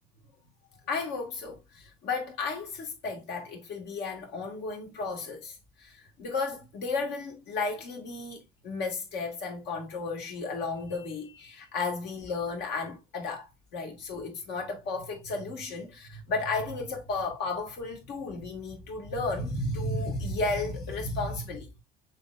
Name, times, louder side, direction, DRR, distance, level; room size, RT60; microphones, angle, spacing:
voice 1, 0.9-21.7, left 3 dB, 80° left, 1.9 m, -33 dB
6.7 x 3.0 x 2.4 m
cardioid pair, 110°, 17 cm